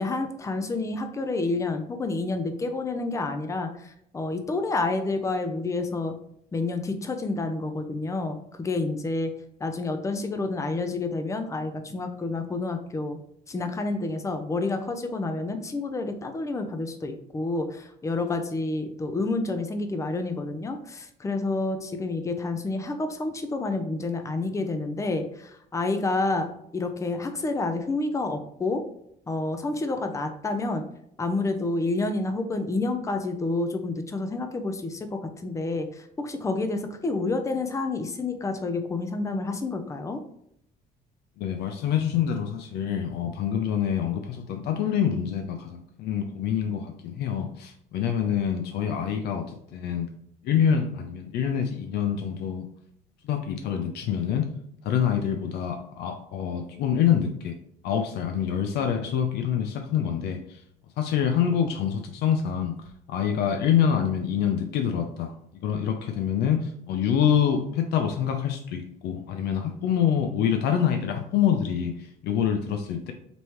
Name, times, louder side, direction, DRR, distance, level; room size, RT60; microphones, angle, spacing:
voice 1, 0.0-6.2 6.5-9.3 9.6-13.2 13.5-26.5 26.7-28.8 29.3-30.8 31.2-40.2, left 3 dB, 20° left, 7 dB, 0.6 m, -29 dB
voice 2, 41.4-50.1 50.4-52.7 53.2-54.5 54.8-57.6 57.8-60.6 61.0-62.7 63.1-65.3 65.6-73.1, left 8 dB, 75° left, 5 dB, 0.5 m, -26 dB
5.2 x 3.1 x 3.0 m, 0.72 s
cardioid pair, 110°, 17 cm